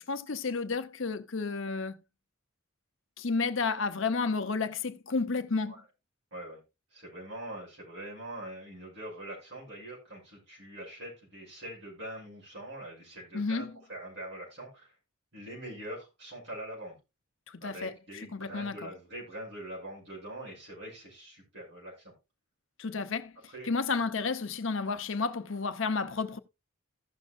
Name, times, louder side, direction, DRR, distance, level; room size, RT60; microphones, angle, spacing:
voice 1, 0.0-2.0 3.2-5.7 13.3-13.7 17.5-18.9 22.8-23.3 23.6-26.4, left 4 dB, 65° left, 0.8 m, -31 dB
voice 2, 6.9-14.9 15.3-17.0 17.6-22.1 23.5-23.7, right 1 dB, 55° right, 6.2 m, -43 dB
15.5 x 6.3 x 2.4 m
head